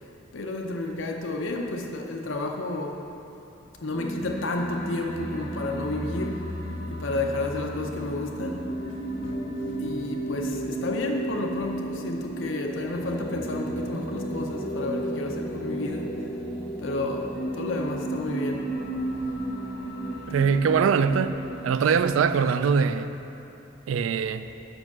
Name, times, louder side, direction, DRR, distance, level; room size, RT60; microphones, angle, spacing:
voice 1, 0.3-3.0 3.8-6.5 6.9-8.6 9.2-9.4 9.8-16.1 16.8-18.7 19.1-19.4, left 2 dB, 70° left, 0.7 m, -31 dB
sound 1, 3.9-22.5, right 1 dB, 50° left, 1.8 m, -33 dB
voice 2, 20.3-21.4 21.6-23.2 23.9-24.5, right 6 dB, 85° right, 0.3 m, -22 dB
7.8 x 5.3 x 6.1 m
head